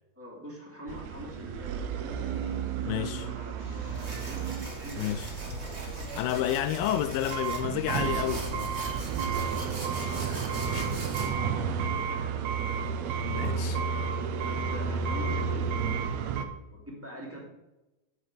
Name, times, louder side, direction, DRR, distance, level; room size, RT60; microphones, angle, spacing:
voice 1, 0.1-2.6 2.9-4.5 4.8-5.2 9.3-13.2 14.4-16.1 16.7-17.4, equal, 5° right, -4 dB, 2.2 m, -45 dB
sound 1, 0.9-16.4, right 6 dB, 80° right, 1.6 m, -32 dB
voice 2, 2.9-3.3 5.0-5.3 6.2-8.8 13.2-13.8, left 12 dB, 85° left, 8 dB, 2.3 m, -30 dB
sound 2, 3.6-11.0, left 6 dB, 65° left, 2.4 m, -44 dB
sound 3, 3.9-11.3, right 1 dB, 40° right, 0.9 m, -41 dB
9.7 x 6.6 x 5.0 m, 1.0 s
omnidirectional pair, 4.1 m